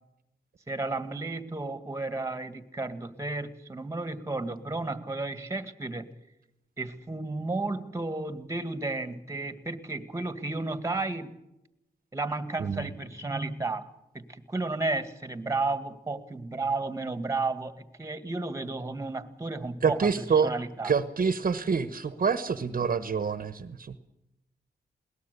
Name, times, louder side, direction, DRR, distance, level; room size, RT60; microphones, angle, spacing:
voice 1, 0.7-6.1 6.8-11.3 12.1-20.9, right 3 dB, 15° right, 11 dB, 2.0 m, -33 dB
voice 2, 19.8-20.5 20.8-24.0, right 6 dB, 55° right, 12 dB, 1.2 m, -27 dB
21.5 x 19.0 x 6.8 m, 0.88 s
cardioid pair, 80°, 17 cm